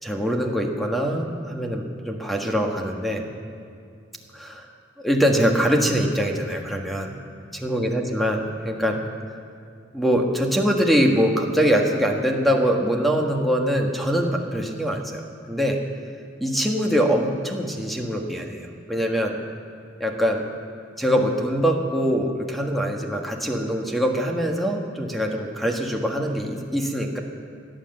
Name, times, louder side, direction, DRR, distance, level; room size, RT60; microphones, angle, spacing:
voice 1, 0.0-3.2 4.3-4.7 5.0-7.1 7.5-9.0 9.9-15.8 16.4-19.4 20.0-20.5 21.0-27.2, equal, ahead, 1 dB, 1.5 m, -23 dB
17.5 x 10.0 x 7.8 m, 2.4 s
head